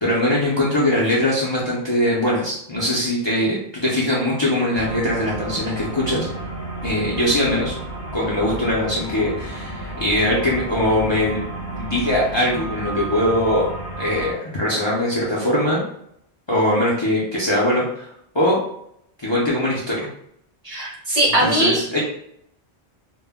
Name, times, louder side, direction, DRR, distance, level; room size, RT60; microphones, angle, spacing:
voice 1, 0.0-6.3 6.8-7.7 8.1-11.4 11.7-13.7 14.0-15.8 16.5-18.1 18.3-18.6 19.2-20.1 21.4-22.0, left 1 dB, 35° left, -6 dB, 0.5 m, -21 dB
sound 1, 4.7-14.3, right 2 dB, 55° left, 1.0 m, -31 dB
voice 2, 20.6-22.0, right 1 dB, 40° right, -5 dB, 0.8 m, -20 dB
2.2 x 2.1 x 3.5 m, 0.71 s
omnidirectional pair, 1.1 m